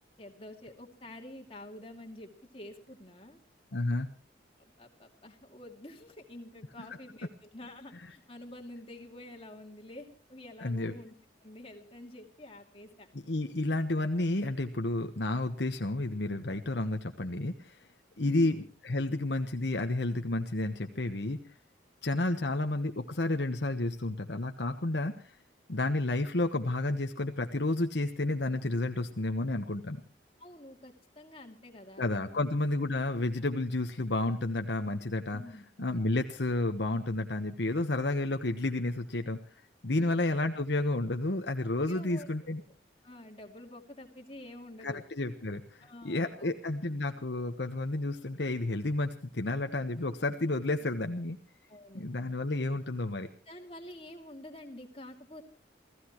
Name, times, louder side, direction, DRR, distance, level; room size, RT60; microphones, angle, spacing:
voice 1, 0.2-3.4 4.6-11.1 11.4-13.1 18.2-18.6 30.4-32.5 35.3-35.6 40.0-40.4 41.9-42.3 43.0-45.0 45.8-46.5 51.7-52.1 53.5-55.4, left 1 dB, 30° left, 3 dB, 2.6 m, -48 dB
voice 2, 3.7-4.1 10.6-10.9 13.3-17.8 18.2-21.4 22.0-25.4 25.7-30.0 32.0-35.4 35.8-39.4 39.8-42.6 44.8-51.4 51.9-53.3, left 2 dB, 65° left, 6 dB, 1.2 m, -31 dB
29.0 x 15.5 x 3.1 m, 0.38 s
head